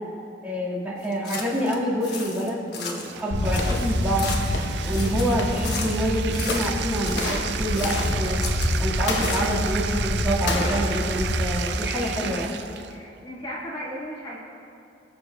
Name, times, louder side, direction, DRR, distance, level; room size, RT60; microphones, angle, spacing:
voice 1, 0.4-4.3 4.8-12.6, equal, 10° right, -7 dB, 1.8 m, -27 dB
sound 1, 1.0-1.8 2.0-3.2 3.5-4.6 4.9-6.0 6.3-7.4 7.7-8.8 9.1-9.8, left 4 dB, 65° left, 1.2 m, -35 dB
Bathtub (filling or washing), 3.0-13.0, right 9 dB, 65° right, 0.4 m, -34 dB
sound 2, 3.3-12.4, left 1 dB, 80° left, 0.9 m, -27 dB
voice 2, 12.2-12.6 12.9-14.4, equal, 25° left, -6 dB, 1.3 m, -36 dB
21.0 x 7.0 x 2.3 m, 2.6 s
head